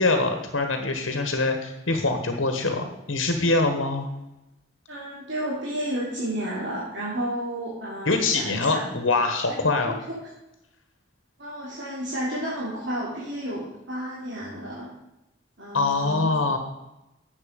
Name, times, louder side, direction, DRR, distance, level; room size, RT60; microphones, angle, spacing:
voice 1, 0.0-4.1 8.0-10.0 15.7-16.6, left 3 dB, 80° left, 5 dB, 1.6 m, -24 dB
voice 2, 4.9-9.0 9.6-9.9 11.4-14.9 15.6-16.3, right 1 dB, 60° right, -7 dB, 3.5 m, -32 dB
11.5 x 8.3 x 5.3 m, 0.93 s
head